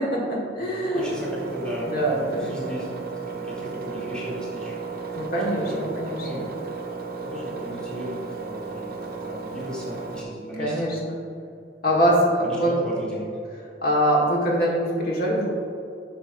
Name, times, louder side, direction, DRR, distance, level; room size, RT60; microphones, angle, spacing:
voice 1, 0.0-1.1 1.8-2.5 5.1-6.4 10.6-11.2 11.8-12.7 13.8-15.5, equal, 55° left, -4 dB, 1.4 m, -23 dB
voice 2, 0.6-5.2 5.6-5.9 6.2-6.5 7.2-10.9 12.4-13.4, equal, 5° left, -6 dB, 1.4 m, -36 dB
Engine, 0.9-10.2, right 4 dB, 55° right, 0.6 m, -34 dB
8.4 x 5.8 x 2.5 m, 2.5 s
head